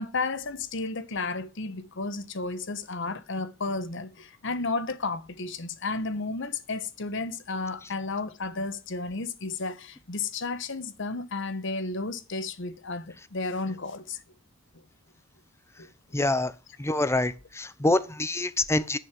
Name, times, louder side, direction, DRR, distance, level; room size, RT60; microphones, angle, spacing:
voice 1, 0.0-14.2 15.8-15.9, left 3 dB, 65° left, 1.1 m, -32 dB
voice 2, 16.1-16.5 16.8-19.0, left 2 dB, 15° left, 0.7 m, -26 dB
10.5 x 6.3 x 5.9 m
head